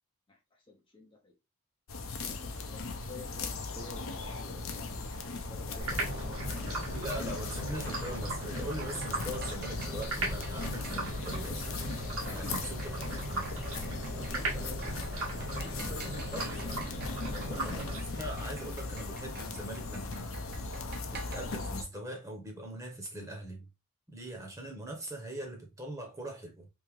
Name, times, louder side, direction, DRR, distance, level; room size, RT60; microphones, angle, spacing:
voice 1, 0.3-1.3 2.2-7.2 12.2-13.0 14.1-15.1 15.5-16.9 17.2-17.7, left 2 dB, 20° left, 0.5 m, -50 dB
sound 1, 1.9-21.8, left 3 dB, 75° left, 0.6 m, -38 dB
sound 2, 5.8-18.5, right 1 dB, 90° right, 1.7 m, -38 dB
voice 2, 6.9-11.7 12.2-13.6 16.3-16.6 17.5-20.4 21.2-23.7 24.1-26.7, right 1 dB, 15° right, 0.9 m, -41 dB
sound 3, 8.7-21.4, right 3 dB, 45° right, 0.6 m, -50 dB
3.5 x 2.8 x 3.1 m
head